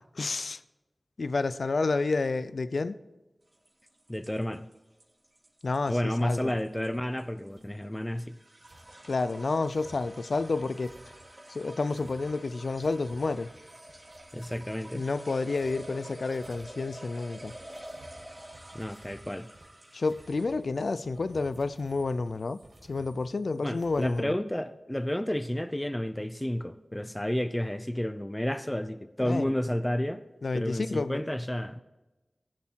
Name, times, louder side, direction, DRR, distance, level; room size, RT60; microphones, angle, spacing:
voice 1, 0.1-0.6 1.2-3.0 5.6-6.5 9.1-11.0 11.5-13.5 14.9-17.5 19.9-22.6 22.9-24.3 29.2-29.5 30.4-31.2, left 3 dB, 85° left, 14 dB, 0.4 m, -30 dB
sound 1, 3.5-20.7, right 1 dB, 40° right, 2.7 m, -48 dB
voice 2, 4.1-4.7 5.9-8.4 14.3-15.0 18.7-19.5 23.6-30.2 30.5-31.8, left 1 dB, 15° left, 11 dB, 0.6 m, -31 dB
sound 2, 6.5-7.2 7.5-7.8 8.6-24.2, right 1 dB, 80° right, 2.2 m, -56 dB
14.5 x 7.3 x 4.6 m, 1.1 s
wide cardioid pair, 50°, 0 cm